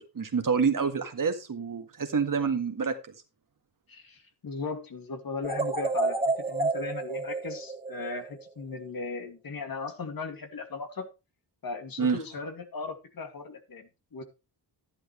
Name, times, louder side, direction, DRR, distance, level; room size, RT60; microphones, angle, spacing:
voice 1, 0.0-3.0 12.0-12.2, right 5 dB, 50° right, 7 dB, 1.9 m, -27 dB
voice 2, 3.9-6.2 6.5-11.1 11.6-14.2, left 4 dB, 55° left, 6 dB, 2.4 m, -37 dB
sound 1, 5.4-8.6, right 3 dB, 15° right, 2.2 m, -30 dB
11.5 x 10.5 x 3.2 m, 0.27 s
cardioid pair, 80°, 42 cm